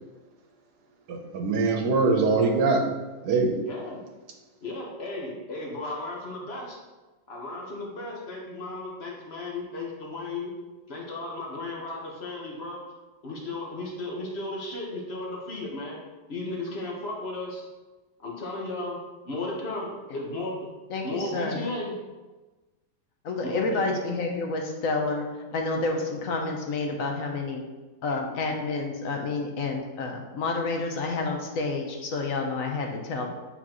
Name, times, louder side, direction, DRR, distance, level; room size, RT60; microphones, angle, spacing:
voice 1, 1.1-2.8 3.2-3.5, right 3 dB, 80° right, 4 dB, 1.3 m, -23 dB
voice 2, 3.6-4.0 4.6-6.8 7.3-10.5 10.9-12.8 13.2-16.0 16.3-17.6 18.2-20.7 21.0-21.9 23.4-23.8, left 2 dB, 40° left, -2 dB, 1.3 m, -35 dB
voice 3, 20.9-21.7 23.2-27.6 28.0-33.3, left 3 dB, 60° left, 2 dB, 1.1 m, -29 dB
8.3 x 4.0 x 3.0 m, 1.2 s
omnidirectional pair, 1.7 m